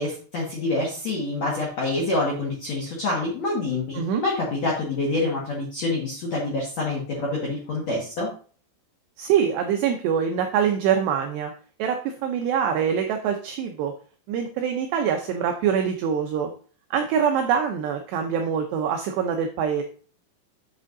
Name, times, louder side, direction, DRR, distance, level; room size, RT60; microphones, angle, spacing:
voice 1, 0.0-8.3, left 2 dB, 85° left, -4 dB, 1.5 m, -27 dB
voice 2, 9.2-11.5 11.8-13.9 14.3-16.5 16.9-19.8, right 7 dB, 90° right, 4 dB, 2.4 m, -24 dB
8.6 x 7.5 x 2.6 m, 0.41 s
omnidirectional pair, 5.9 m